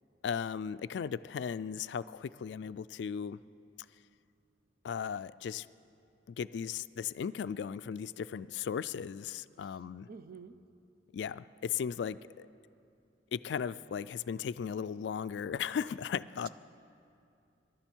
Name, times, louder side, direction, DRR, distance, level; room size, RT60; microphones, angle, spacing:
voice 1, 0.2-3.4 4.8-5.7 6.3-10.1 11.1-12.5 13.3-16.5, left 7 dB, 70° left, 15 dB, 0.3 m, -36 dB
voice 2, 9.6-10.6, right 5 dB, 55° right, 11 dB, 0.6 m, -51 dB
23.5 x 11.5 x 4.5 m, 2.5 s
head